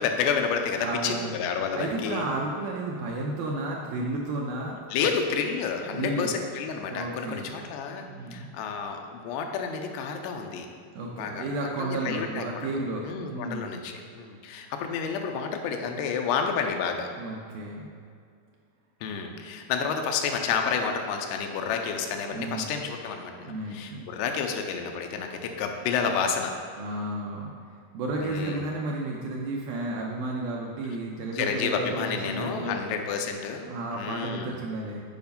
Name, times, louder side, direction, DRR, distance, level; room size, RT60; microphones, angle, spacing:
voice 1, 0.0-2.3 4.9-8.1 8.3-10.7 11.1-11.5 11.8-12.8 13.0-17.1 19.0-26.5 28.2-28.7 31.3-34.5, left 6 dB, 90° left, 4 dB, 2.8 m, -30 dB
voice 2, 0.8-1.3 1.7-5.1 5.9-6.3 6.9-7.5 8.1-8.5 11.0-13.7 17.2-17.9 22.3-22.7 23.4-24.1 26.8-27.5 27.9-32.8 33.7-35.0, right 2 dB, 75° right, -1 dB, 2.2 m, -32 dB
9.5 x 5.1 x 5.3 m, 2.3 s
omnidirectional pair, 4.8 m